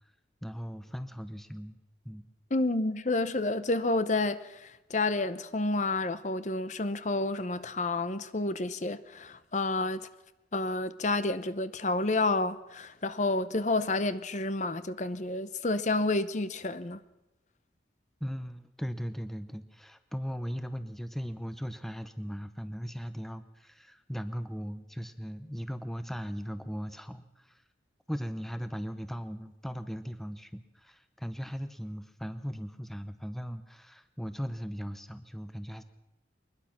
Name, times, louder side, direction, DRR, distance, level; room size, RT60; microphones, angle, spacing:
voice 1, 0.4-1.8 2.0-2.3 18.2-27.6 28.1-35.8, equal, ahead, 0.7 m, -38 dB
voice 2, 2.5-10.0 10.5-17.0, left 2 dB, 40° left, 0.8 m, -30 dB
23.0 x 20.5 x 6.0 m
head